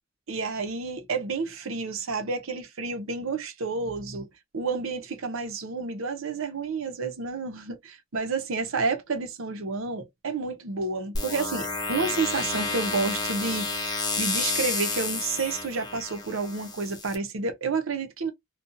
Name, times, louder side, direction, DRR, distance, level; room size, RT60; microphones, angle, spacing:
voice 1, 0.3-4.3 4.5-18.3, right 4 dB, 70° right, 0.7 m, -30 dB
sound 1, 11.1-17.1, left 3 dB, 20° left, 0.6 m, -30 dB
2.6 x 2.3 x 2.6 m
head